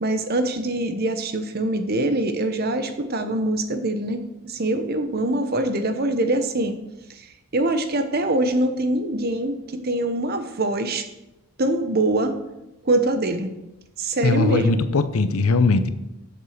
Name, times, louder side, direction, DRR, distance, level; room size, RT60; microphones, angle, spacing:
voice 1, 0.0-6.8 7.2-7.3 7.5-11.1 11.6-12.3 12.8-13.5 14.0-14.9, right 1 dB, 45° right, 8 dB, 1.0 m, -24 dB
voice 2, 14.2-15.9, left 3 dB, 80° left, 11 dB, 0.7 m, -20 dB
8.1 x 7.3 x 6.6 m, 0.95 s
head